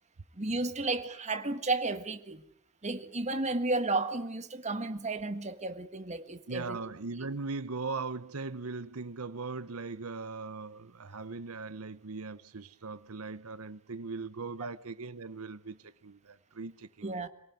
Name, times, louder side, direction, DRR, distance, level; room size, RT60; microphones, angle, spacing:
voice 1, 0.4-2.4 2.8-6.8 17.0-17.3, right 2 dB, 35° right, 1.7 m, -33 dB
voice 2, 6.5-17.3, right 4 dB, 85° right, 0.9 m, -39 dB
26.5 x 18.5 x 9.3 m
head